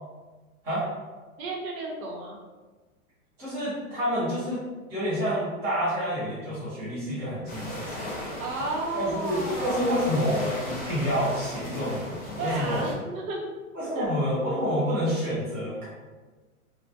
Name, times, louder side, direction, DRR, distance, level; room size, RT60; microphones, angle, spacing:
voice 1, 1.4-2.4 8.0-10.0 12.4-13.5 13.9-14.1, right 2 dB, 75° right, -1 dB, 0.8 m, -33 dB
voice 2, 3.4-4.6 4.9-8.2 8.9-12.9 13.7-15.9, equal, 10° right, -12 dB, 0.5 m, -28 dB
sound 1, 7.5-12.9, left 1 dB, 35° left, 0.9 m, -37 dB
2.2 x 2.1 x 2.6 m, 1.3 s
hypercardioid pair, 165°, 42 cm